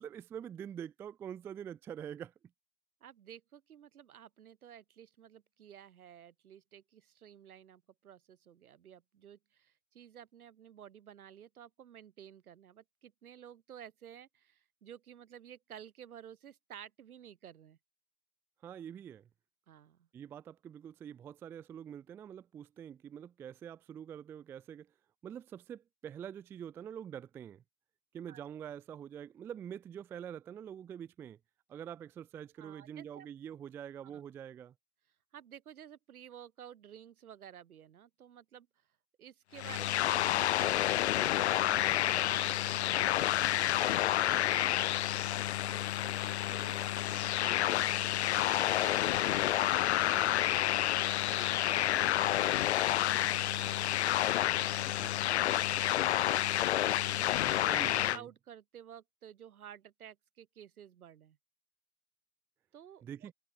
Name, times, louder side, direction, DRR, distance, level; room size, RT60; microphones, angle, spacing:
voice 1, 0.0-2.3 18.6-19.2 20.1-24.9 25.2-27.6 28.1-31.4 31.7-34.7 55.0-55.3 57.3-58.3 63.0-63.3, right 9 dB, 5° right, 0.6 m, -45 dB
voice 2, 3.0-17.8 19.7-20.1 28.3-28.4 32.6-33.3 34.0-34.2 35.3-38.7 39.2-44.8 45.3-51.5 51.9-54.1 54.6-56.9 57.1-57.5 57.8-61.4 62.7-63.3, right 9 dB, 65° right, 7.9 m, -53 dB
sound 1, 39.6-58.2, left 13 dB, 45° left, 0.7 m, -29 dB
hypercardioid pair, 155°, 46 cm